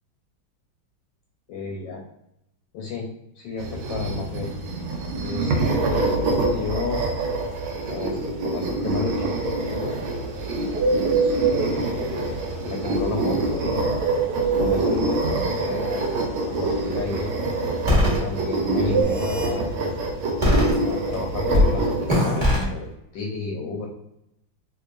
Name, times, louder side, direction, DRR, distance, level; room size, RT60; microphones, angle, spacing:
voice 1, 1.5-2.0 2.7-3.1 3.4-4.5 5.2-7.0 7.8-9.9 10.9-13.9 14.6-16.1 16.6-17.3 18.2-19.9 20.8-23.9, left 4 dB, 75° left, 0 dB, 1.2 m, -32 dB
sound 1, 3.6-22.2, right 2 dB, 85° right, 1.4 m, -26 dB
Bird, 9.1-19.0, right 5 dB, 65° right, 1.0 m, -25 dB
sound 2, 17.9-18.2 18.9-19.5 20.4-21.1 21.5-21.7 22.1-22.6, left 1 dB, 25° right, 1.0 m, -20 dB
3.7 x 2.9 x 2.5 m, 0.82 s
omnidirectional pair, 2.2 m